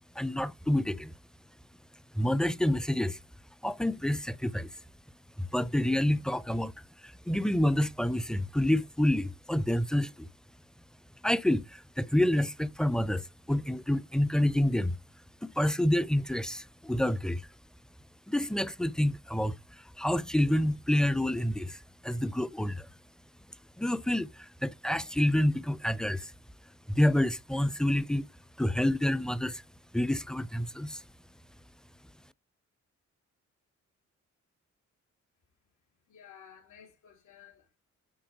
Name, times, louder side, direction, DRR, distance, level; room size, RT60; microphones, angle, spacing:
voice 1, 0.2-1.1 2.1-3.2 3.6-4.7 5.4-6.7 7.0-10.3 11.2-15.0 15.4-17.5 18.3-22.9 23.8-26.3 26.9-28.3 28.6-29.6 29.9-31.0, left 1 dB, ahead, 0.5 m, -28 dB
voice 2, 36.1-37.8, left 8 dB, 85° left, 3.6 m, -54 dB
9.2 x 4.3 x 4.6 m
cardioid pair, 115°, 29 cm